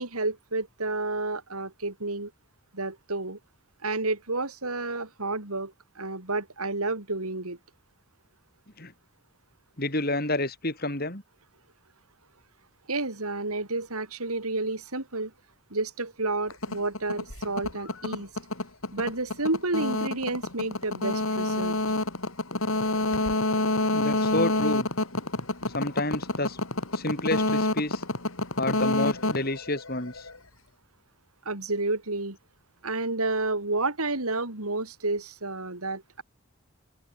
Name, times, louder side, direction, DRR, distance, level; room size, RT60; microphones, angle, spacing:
voice 1, 0.0-2.3 2.7-3.4 3.8-7.6 12.9-15.3 15.7-18.3 18.9-21.8 31.4-32.4 32.8-36.2, right 2 dB, 85° right, 4.4 m, -30 dB
voice 2, 9.8-11.2 23.9-24.9 25.7-26.6 26.9-28.0 28.6-30.3, left 2 dB, 45° left, 5.5 m, -29 dB
sound 1, 16.5-30.4, left 2 dB, 70° left, 4.5 m, -28 dB
open air
head